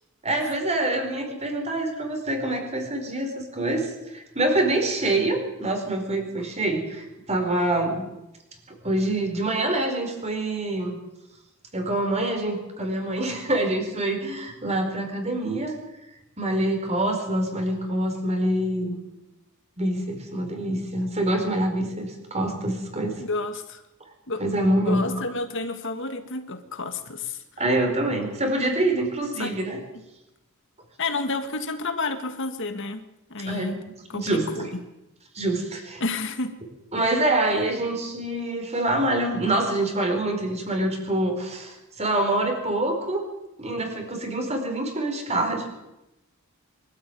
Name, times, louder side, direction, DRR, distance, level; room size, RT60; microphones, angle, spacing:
voice 1, 0.2-8.0 8.8-11.0 11.7-15.8 16.4-18.9 19.8-23.1 24.4-25.1 27.6-29.8 33.4-33.7 34.1-34.5 35.3-36.0 36.9-43.2 43.6-45.7, right 1 dB, 30° right, 4 dB, 4.8 m, -25 dB
voice 2, 23.2-23.8 24.3-24.4 24.8-27.4 29.4-29.6 31.0-33.0 33.3-33.8 34.1-34.7 36.0-36.6, left 3 dB, 60° left, 8 dB, 1.9 m, -30 dB
24.0 x 13.0 x 9.3 m, 0.95 s
head